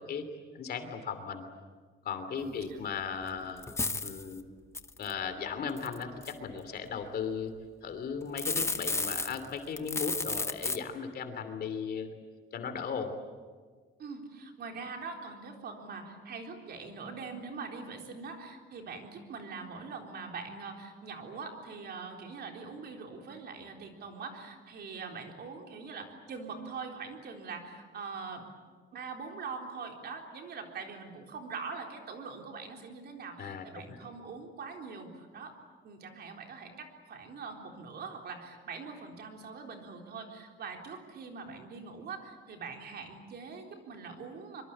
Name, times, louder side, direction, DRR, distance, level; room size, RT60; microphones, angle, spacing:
voice 1, 0.5-1.4 2.0-3.6 4.0-4.4 5.0-7.5 7.8-12.1 12.5-13.1 33.4-34.0, left 6 dB, 50° left, 8 dB, 2.9 m, -37 dB
voice 2, 2.4-2.8 14.0-28.5 28.9-35.6 35.8-44.6, right 4 dB, 50° right, 2 dB, 3.9 m, -43 dB
sound 1, 3.2-3.3 3.6-4.2 4.7-5.1 5.8-6.3 8.2-9.5 9.8-10.8, left 3 dB, 15° left, 0.9 m, -32 dB
25.0 x 24.5 x 8.6 m, 1.5 s
cardioid pair, 175°, 21 cm